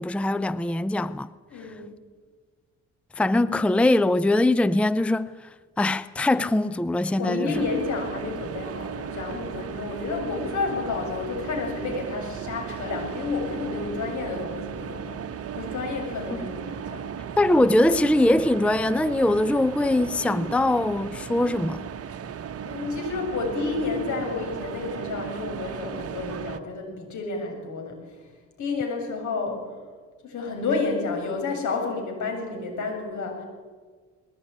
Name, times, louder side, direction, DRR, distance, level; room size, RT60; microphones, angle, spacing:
voice 1, 0.0-1.3 3.2-5.3 5.8-7.5 16.3-16.5 17.4-21.9, left 1 dB, 5° left, 0.6 m, -22 dB
voice 2, 1.5-1.8 7.2-15.2 15.5-17.1 17.6-17.7 22.6-28.0 28.6-29.6 30.2-33.4, left 3 dB, 70° left, 7.7 m, -30 dB
sound 1, 7.5-26.6, right 8 dB, 50° right, 1.3 m, -36 dB
20.5 x 17.5 x 9.9 m
cardioid pair, 90°, 30 cm